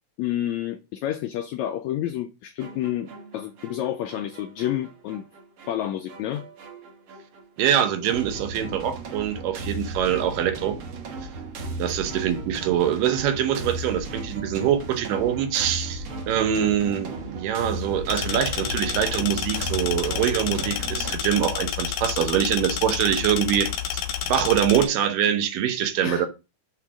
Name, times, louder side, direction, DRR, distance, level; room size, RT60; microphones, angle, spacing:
voice 1, 0.2-5.2 5.7-6.4 26.0-26.3, left 12 dB, 85° left, 1.6 m, -29 dB
sound 1, 2.6-21.1, right 2 dB, 60° right, 1.5 m, -36 dB
voice 2, 7.6-10.8 11.8-26.3, right 10 dB, 80° right, 2.5 m, -24 dB
sound 2, 18.1-24.9, left 9 dB, 65° left, 1.7 m, -29 dB
6.4 x 3.7 x 6.0 m
omnidirectional pair, 3.8 m